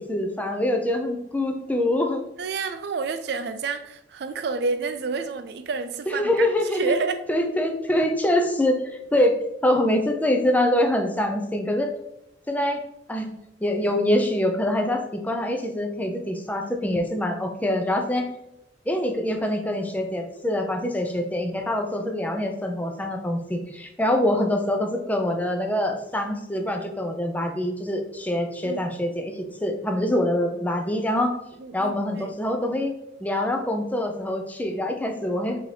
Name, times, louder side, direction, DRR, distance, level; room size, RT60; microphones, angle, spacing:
voice 1, 0.0-2.2 6.1-7.0 7.3-11.9 12.5-12.8 13.1-13.3 13.6-18.3 18.9-31.4 31.7-32.9 33.2-35.6, left 1 dB, 10° left, 4 dB, 0.4 m, -25 dB
voice 2, 2.4-7.2 28.6-28.8 31.6-32.3, right 4 dB, 65° right, 10 dB, 0.4 m, -29 dB
4.9 x 2.9 x 3.2 m, 0.82 s
head